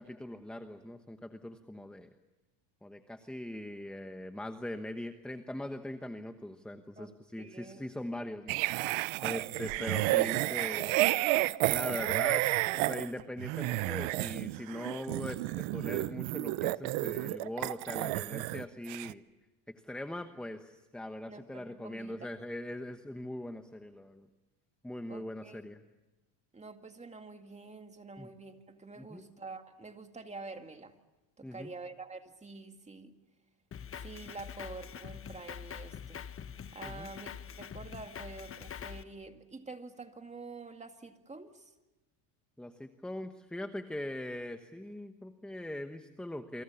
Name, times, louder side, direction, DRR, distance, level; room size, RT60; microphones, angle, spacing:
voice 1, 0.0-2.1 2.8-8.6 9.2-11.2 11.7-12.4 12.7-19.2 19.7-24.3 24.8-25.8 28.2-28.3 29.0-29.2 31.4-31.7 36.8-37.1 42.6-46.6, left 1 dB, ahead, 8 dB, 1.1 m, -41 dB
voice 2, 7.0-7.8 21.3-22.3 25.1-25.6 26.5-31.0 31.4-33.1 33.9-36.3 36.7-37.3 37.6-41.7, right 3 dB, 15° right, 6 dB, 2.2 m, -47 dB
sound 1, 8.5-18.6 18.9-19.1, right 19 dB, 70° right, 0.9 m, -31 dB
Drum kit, 33.7-39.0, left 7 dB, 25° left, 1.1 m, -44 dB
29.0 x 25.0 x 7.1 m, 1.0 s
cardioid pair, 125°, 49 cm